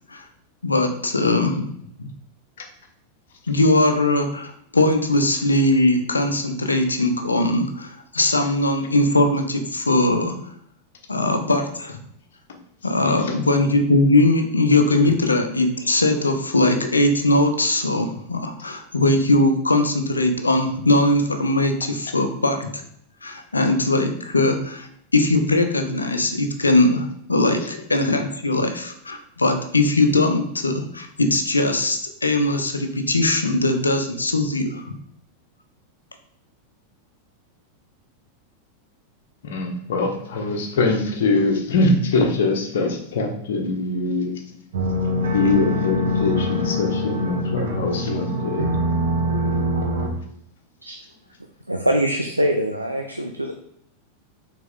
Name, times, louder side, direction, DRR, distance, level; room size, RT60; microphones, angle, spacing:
voice 1, 0.6-1.7 2.0-2.1 3.5-10.4 11.1-12.0 12.8-22.8 23.2-34.9, left 2 dB, 80° left, 6 dB, 0.8 m, -20 dB
voice 2, 13.0-13.4 39.4-44.3 45.2-48.7, left 3 dB, 60° left, 2 dB, 1.3 m, -23 dB
sound 1, 44.7-50.1, left 1 dB, 60° right, 1.5 m, -24 dB
voice 3, 51.7-53.5, right 1 dB, 85° right, 4 dB, 0.5 m, -23 dB
6.1 x 4.1 x 3.7 m, 0.69 s
figure-of-eight pair, 90°, 0 cm